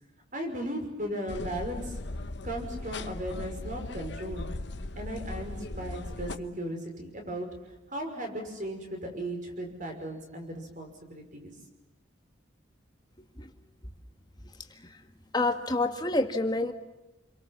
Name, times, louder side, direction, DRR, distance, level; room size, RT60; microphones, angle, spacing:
voice 1, 0.3-2.0 2.4-4.5 4.9-7.5 7.9-11.5, right 1 dB, 40° right, 4 dB, 5.7 m, -36 dB
sound 1, 1.3-6.4, left 2 dB, 60° left, 1.0 m, -38 dB
voice 2, 15.3-16.7, left 2 dB, 20° left, 6 dB, 1.7 m, -28 dB
29.0 x 23.5 x 7.4 m, 1.0 s
head